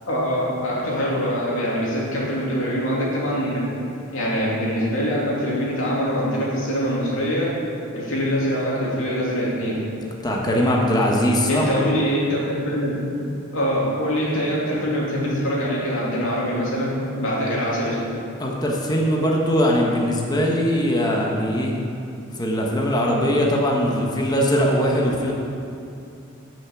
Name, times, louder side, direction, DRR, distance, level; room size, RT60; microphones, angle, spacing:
voice 1, 0.1-3.7 4.1-7.6 7.9-9.8 11.5-13.0 13.5-18.0, equal, 75° left, -5 dB, 2.7 m, -24 dB
voice 2, 10.2-11.7 18.4-21.7 22.3-25.3, equal, 20° left, -2 dB, 1.2 m, -21 dB
9.3 x 6.0 x 7.2 m, 2.6 s
head